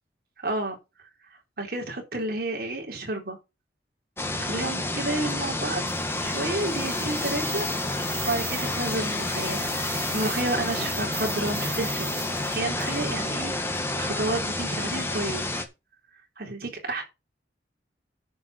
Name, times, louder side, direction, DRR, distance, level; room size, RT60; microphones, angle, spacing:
voice 1, 0.4-0.8 1.6-3.4 4.4-5.8 6.1-7.6 8.3-9.6 10.1-12.1 12.5-15.5 16.4-17.0, right 2 dB, 55° right, 3.8 m, -30 dB
sound 1, 4.2-15.6, left 2 dB, 15° left, 1.4 m, -29 dB
sound 2, 5.9-13.1, right 4 dB, 20° right, 3.9 m, -39 dB
10.0 x 5.6 x 6.0 m
head